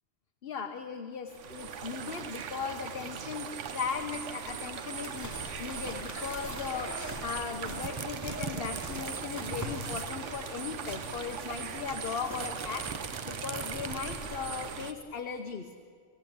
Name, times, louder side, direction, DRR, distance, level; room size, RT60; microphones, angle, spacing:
voice 1, 0.4-15.7, left 6 dB, 55° left, 5 dB, 1.1 m, -38 dB
sound 1, 1.3-14.9, right 7 dB, 85° right, 1.3 m, -40 dB
sound 2, 5.0-14.6, equal, 15° right, 2.7 m, -44 dB
sound 3, 7.2-10.2 10.5-10.6 10.8-14.4, right 5 dB, 35° right, 0.5 m, -42 dB
27.0 x 15.5 x 8.6 m, 2.1 s
omnidirectional pair, 1.2 m